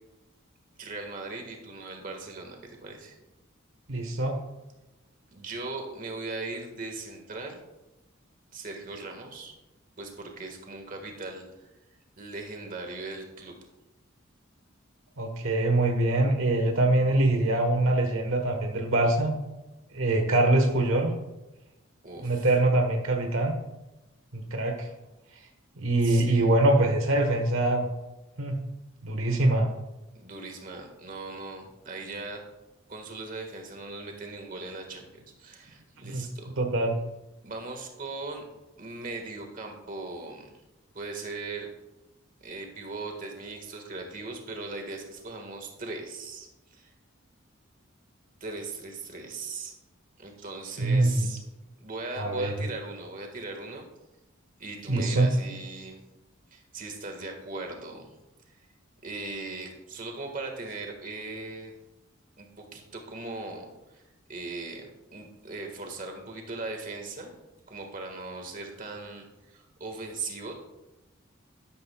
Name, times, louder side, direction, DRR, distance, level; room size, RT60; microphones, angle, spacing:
voice 1, 0.8-3.2 5.3-7.6 8.5-9.5 10.0-11.7 12.2-13.5 22.0-22.5 26.0-26.5 30.1-32.4 32.9-36.5 37.4-38.4 38.8-40.5 40.9-41.7 42.4-46.9 48.4-49.7 50.2-51.4 51.8-53.9 54.6-56.0 56.5-58.1 59.0-61.7 62.4-62.5 62.7-64.0 64.3-67.3 67.7-70.5, right 3 dB, 40° right, 3 dB, 1.6 m, -39 dB
voice 2, 3.9-4.3 15.2-19.4 19.9-21.2 22.2-23.5 24.3-24.9 25.8-27.9 28.4-28.6 29.0-29.7 36.0-36.3 36.6-37.0 50.8-51.2 52.2-52.5 54.9-55.3, right 2 dB, 80° right, 4 dB, 1.3 m, -24 dB
12.0 x 12.0 x 2.3 m, 1.0 s
head